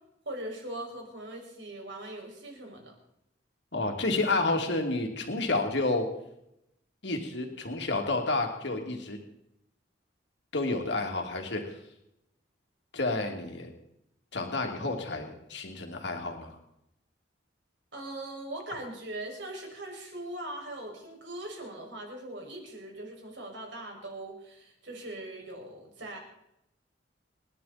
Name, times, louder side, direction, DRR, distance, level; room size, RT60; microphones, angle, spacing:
voice 1, 0.2-2.9 17.9-26.2, right 1 dB, 75° right, 0 dB, 6.4 m, -40 dB
voice 2, 3.7-6.1 7.0-9.2 10.5-11.8 12.9-13.7 14.3-16.6, left 2 dB, 70° left, 2 dB, 2.8 m, -30 dB
29.5 x 11.0 x 4.3 m, 0.82 s
head